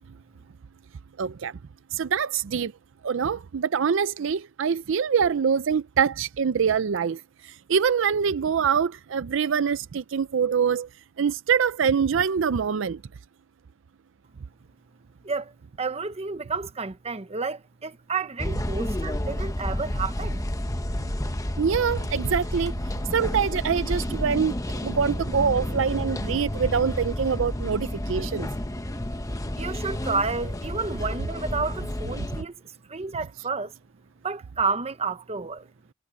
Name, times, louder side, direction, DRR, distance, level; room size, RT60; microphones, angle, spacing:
voice 1, 1.2-1.5 1.9-2.7 3.0-10.9 11.2-13.0 21.6-22.7 23.1-28.5, right 6 dB, 65° right, 0.5 m, -24 dB
voice 2, 15.2-20.4 29.6-33.7 34.2-35.7, right 4 dB, 30° right, 0.9 m, -31 dB
sound 1, 18.4-32.4, left 1 dB, 15° left, 1.0 m, -30 dB
head